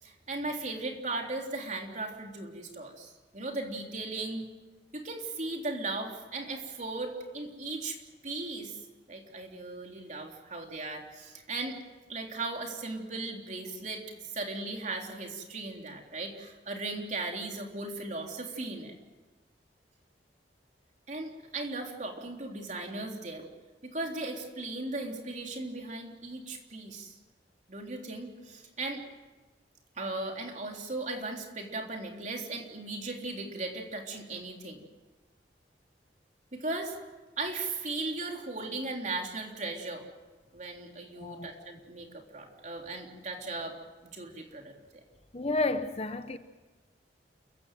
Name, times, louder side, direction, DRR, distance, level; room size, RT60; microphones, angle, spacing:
voice 1, 0.0-4.5 4.9-8.8 9.1-11.8 12.1-18.9 21.1-23.5 23.8-27.2 27.7-29.0 29.9-34.8 36.5-37.0 37.4-40.0 40.5-43.8 44.0-44.7, right 2 dB, 45° right, 3.6 m, -37 dB
voice 2, 41.2-41.7 45.3-46.4, left 2 dB, 35° left, 1.0 m, -31 dB
28.5 x 15.5 x 9.2 m
head